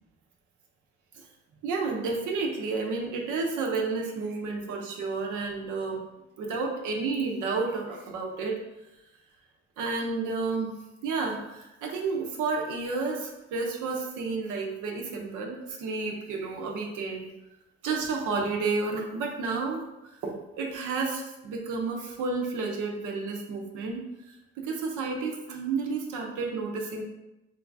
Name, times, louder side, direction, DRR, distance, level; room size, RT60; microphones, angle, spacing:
voice 1, 1.6-6.0 6.4-8.6 9.8-17.3 17.8-24.0 24.6-27.0, right 4 dB, 85° right, 0 dB, 0.7 m, -31 dB
3.4 x 3.0 x 2.5 m, 0.96 s
cardioid pair, 90°, 30 cm